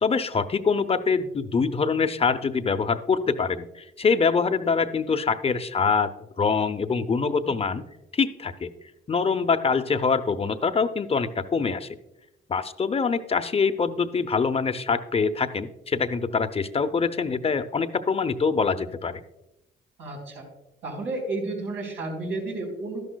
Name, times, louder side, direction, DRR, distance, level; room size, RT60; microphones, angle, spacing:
voice 1, 0.0-6.1 6.4-7.8 8.1-8.7 9.1-11.9 12.5-19.2, left 5 dB, 30° left, 11 dB, 0.6 m, -24 dB
voice 2, 20.0-20.5 20.8-23.1, right 2 dB, 80° right, -1 dB, 4.2 m, -32 dB
12.5 x 11.5 x 2.3 m, 0.90 s
cardioid pair, 90°, 20 cm